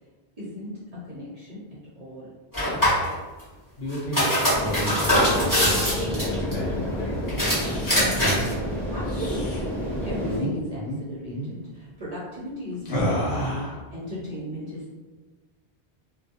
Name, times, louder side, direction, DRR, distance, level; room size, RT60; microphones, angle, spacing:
voice 1, 0.4-1.6 2.0-2.3 8.9-14.9, left 1 dB, 50° right, -7 dB, 0.5 m, -36 dB
sound 1, 2.5-3.1 3.9-6.5 7.3-8.5, equal, 20° left, 0.9 m, -22 dB
voice 2, 3.8-7.3, left 1 dB, 55° left, -5 dB, 0.6 m, -33 dB
sound 2, 4.5-10.4, equal, 5° left, 0.5 m, -29 dB
sound 3, 7.3-8.1 9.0-9.6 10.3-10.5 10.8-11.0 11.3-11.5 12.9-13.8, equal, 80° left, 0.9 m, -30 dB
2.3 x 2.0 x 2.7 m, 1.3 s
omnidirectional pair, 1.1 m